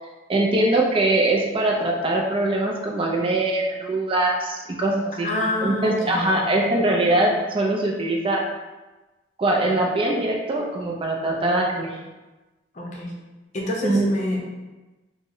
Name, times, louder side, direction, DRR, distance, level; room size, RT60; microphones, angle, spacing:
voice 1, 0.3-5.3 5.6-8.4 9.4-12.0 13.8-14.1, right 2 dB, 30° right, -1 dB, 0.4 m, -22 dB
voice 2, 5.2-6.6 12.7-13.1 13.5-14.5, left 1 dB, 40° left, -2 dB, 0.6 m, -27 dB
3.0 x 2.0 x 3.7 m, 1.1 s
head